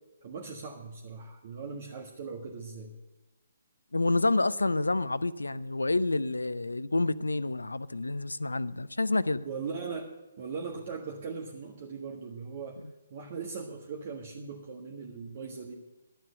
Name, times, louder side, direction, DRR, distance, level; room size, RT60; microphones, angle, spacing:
voice 1, 0.2-2.9 9.4-10.1 10.4-12.8 13.1-15.7, right 5 dB, 45° right, 1.5 m, -39 dB
voice 2, 3.9-9.4, left 2 dB, 90° left, 0.5 m, -28 dB
12.0 x 7.8 x 8.0 m
figure-of-eight pair, 140°, 0 cm